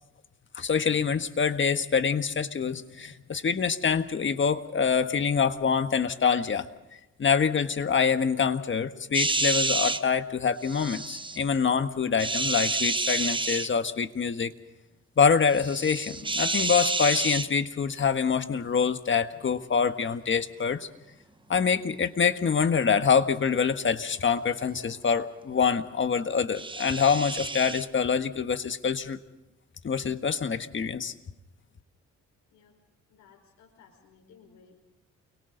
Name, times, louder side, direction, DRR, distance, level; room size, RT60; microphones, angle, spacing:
voice 1, 0.5-6.7 7.2-14.5 15.2-20.9 21.5-29.2 29.8-31.1, left 6 dB, 40° left, 9 dB, 1.5 m, -25 dB
sound 1, 9.1-10.0 10.6-11.4 12.2-13.7 15.5-17.5 26.5-27.8, right 3 dB, 15° right, 1.2 m, -29 dB
voice 2, 33.1-34.7, left 6 dB, 85° left, -1 dB, 5.1 m, -57 dB
29.5 x 24.0 x 4.0 m, 1.0 s
cardioid pair, 90°, 30 cm